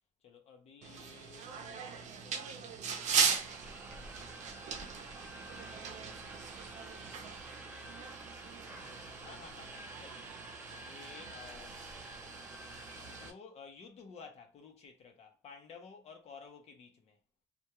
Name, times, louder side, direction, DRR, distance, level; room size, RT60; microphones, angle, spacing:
voice 1, 0.2-5.2 6.2-7.0 8.4-10.2 10.8-11.8 13.0-17.2, left 5 dB, 65° left, 0.7 m, -55 dB
sound 1, 0.8-13.3, right 6 dB, 85° right, 0.5 m, -39 dB
sound 2, 3.0-13.3, right 1 dB, 15° right, 0.5 m, -50 dB
2.3 x 2.3 x 2.9 m
wide cardioid pair, 170°, 12 cm